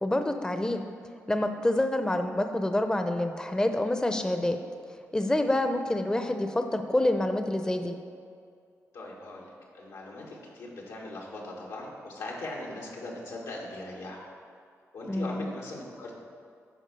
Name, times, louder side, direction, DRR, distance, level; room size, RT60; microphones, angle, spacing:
voice 1, 0.0-0.8 1.3-4.6 5.1-7.9 15.1-15.5, left 1 dB, 15° left, 7 dB, 0.6 m, -27 dB
voice 2, 8.9-14.2 14.9-16.2, left 2 dB, 85° left, -3 dB, 1.8 m, -40 dB
11.0 x 4.7 x 5.3 m, 2.3 s
cardioid pair, 60°, 6 cm